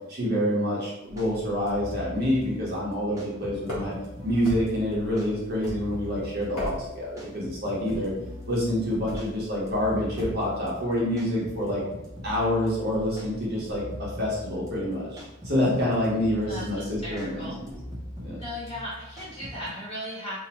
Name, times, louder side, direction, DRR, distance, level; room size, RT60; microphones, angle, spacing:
voice 1, 0.1-4.0 4.2-8.1 8.5-11.8 12.2-17.7 18.2-18.4, left 1 dB, 45° right, -5 dB, 0.8 m, -27 dB
sound 1, 1.1-19.7, left 1 dB, 15° right, 0.5 m, -42 dB
sound 2, 3.6-4.1 4.4-4.9 5.6-6.1 6.4-7.1 7.9-8.2 9.1-9.4 10.2-10.5, equal, 80° left, 1.1 m, -36 dB
voice 2, 16.5-17.6 18.4-20.4, equal, 25° left, -8 dB, 1.0 m, -37 dB
2.7 x 2.0 x 2.8 m, 0.93 s
head